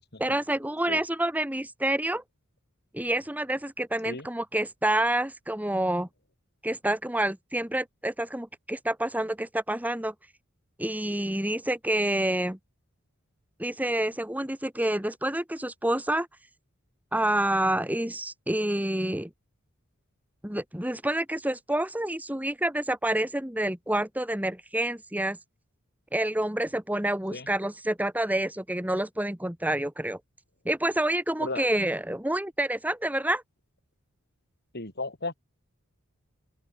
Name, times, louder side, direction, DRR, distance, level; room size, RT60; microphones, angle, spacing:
voice 1, 0.2-2.2 2.9-6.1 6.6-10.1 10.8-12.6 13.6-16.3 17.1-19.3 20.4-25.4 26.1-30.2 30.6-33.4, right 1 dB, 5° right, 1.7 m, -28 dB
voice 2, 34.7-35.3, left 2 dB, 50° left, 5.3 m, -34 dB
open air
head